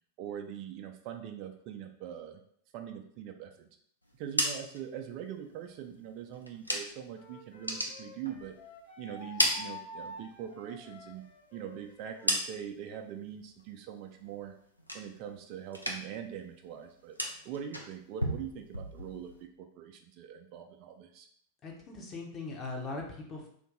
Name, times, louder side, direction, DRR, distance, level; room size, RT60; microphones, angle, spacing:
voice 1, 0.2-2.4 2.7-3.7 4.2-8.5 9.0-11.2 11.5-14.5 14.9-17.2 17.4-21.3, right 9 dB, 40° right, 5 dB, 0.3 m, -42 dB
sound 1, 4.1-7.2 7.5-8.8 9.1-10.4 10.8-12.9 13.3-13.7 14.1-15.4 15.7-16.3 16.5-19.4, equal, 90° left, 0.5 m, -36 dB
Wind instrument woodwind instrument, 7.1-12.4, left 2 dB, 45° left, 1.3 m, -49 dB
voice 2, 21.6-23.5, left 3 dB, 25° left, -1 dB, 0.8 m, -40 dB
2.6 x 2.6 x 3.7 m, 0.65 s
figure-of-eight pair, 90°, 0 cm